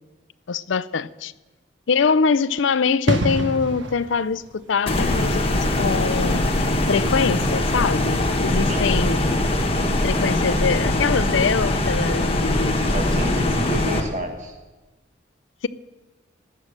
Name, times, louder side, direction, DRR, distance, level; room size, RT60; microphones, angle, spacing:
voice 1, 0.5-1.3 1.9-6.4 6.9-9.2 10.0-13.0 13.3-13.4 13.7-13.8, left 5 dB, 75° left, 0.5 m, -23 dB
sound 1, 3.1-9.6 9.8-10.0, right 1 dB, 70° right, 1.2 m, -31 dB
sound 2, 4.9-14.0, left 1 dB, 30° left, 1.3 m, -22 dB
voice 2, 12.9-14.6, right 1 dB, 40° right, 1.6 m, -30 dB
19.5 x 7.6 x 6.6 m
head